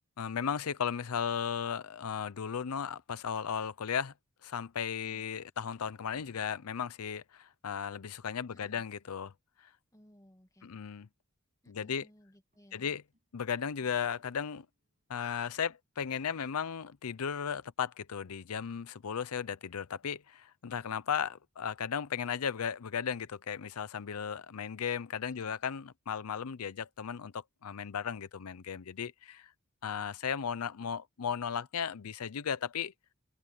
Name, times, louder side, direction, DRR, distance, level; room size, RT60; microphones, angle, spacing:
voice 1, 0.2-4.1 4.4-9.3 9.6-9.7 10.6-11.1 11.7-12.1 12.7-13.0 13.3-14.7 15.1-29.5 29.8-32.9, left 7 dB, 85° left, 0.6 m, -36 dB
voice 2, 8.5-8.8 9.9-10.8 11.6-13.0 25.3-25.5, equal, 15° left, 2.2 m, -61 dB
sound 1, 11.3-11.4 12.5-19.3 21.1-24.1, right 2 dB, 35° right, 6.3 m, -77 dB
head